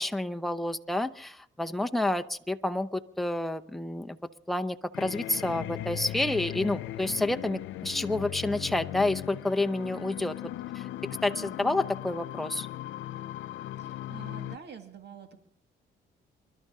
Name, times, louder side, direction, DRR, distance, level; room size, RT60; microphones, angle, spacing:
voice 1, 0.0-4.2 4.5-10.3 10.7-10.9 11.2-12.7, left 2 dB, ahead, 6 dB, 0.7 m, -29 dB
sound 1, 4.9-14.6, left 14 dB, 80° left, 0.5 m, -38 dB
sound 2, 5.3-9.5, left 11 dB, 55° left, 0.8 m, -49 dB
voice 2, 13.8-15.4, right 7 dB, 60° right, 6 dB, 2.0 m, -47 dB
28.5 x 12.0 x 3.7 m, 0.72 s
cardioid pair, 90°, 20 cm